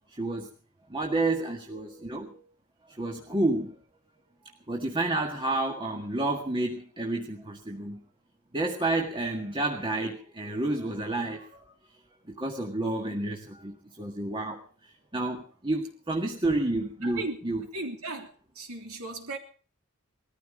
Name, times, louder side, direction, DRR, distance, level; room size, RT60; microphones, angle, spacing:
voice 1, 0.2-0.5 0.9-2.4 3.0-3.7 4.7-8.0 8.5-11.6 12.4-14.6 15.1-17.6, right 2 dB, 20° right, 1.9 m, -30 dB
voice 2, 17.0-17.4 17.7-19.4, right 2 dB, 70° right, 3.4 m, -36 dB
20.0 x 14.0 x 5.1 m
head